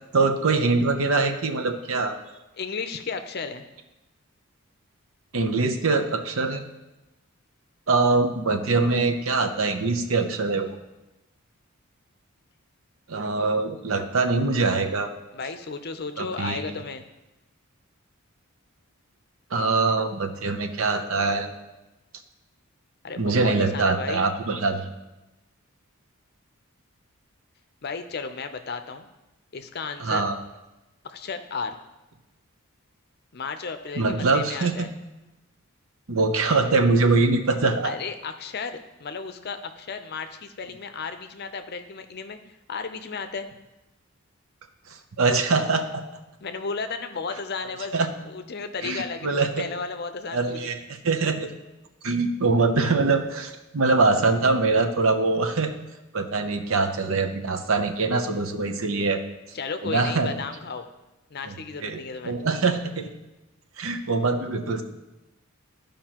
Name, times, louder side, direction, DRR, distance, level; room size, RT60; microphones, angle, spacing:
voice 1, 0.1-2.2 5.3-6.6 7.9-10.8 13.1-15.1 16.2-16.7 19.5-21.5 23.2-24.9 30.0-30.4 34.0-34.9 36.1-38.0 45.2-46.0 47.9-48.1 48.8-49.7 50.3-51.5 52.0-55.7 56.1-59.2 59.8-60.3 61.4-61.5 61.8-63.1 63.8-64.8, right 3 dB, 70° right, 6 dB, 0.7 m, -23 dB
voice 2, 2.6-3.6 15.3-17.0 23.0-24.3 27.8-29.1 29.5-30.2 31.0-31.8 33.3-34.9 37.8-42.4 42.7-43.5 46.4-47.9 48.2-50.6 59.5-60.8 61.3-62.4, left 5 dB, 45° left, 8 dB, 0.6 m, -34 dB
14.0 x 5.1 x 2.9 m, 1.0 s
head